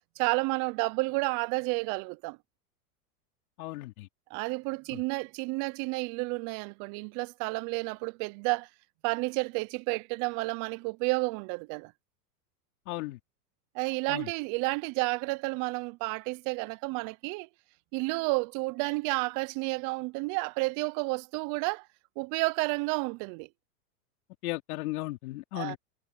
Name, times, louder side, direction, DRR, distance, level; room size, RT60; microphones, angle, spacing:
voice 1, 0.2-2.4 4.3-8.7 9.0-11.9 13.7-17.5 17.9-21.9 22.2-23.5 25.5-25.8, right 27 dB, 40° right, 0.8 m, -31 dB
voice 2, 3.6-4.1 4.9-5.0 12.9-13.2 14.1-14.3 24.4-25.8, left 18 dB, 65° left, 4.1 m, -36 dB
hypercardioid pair, 125°, 48 cm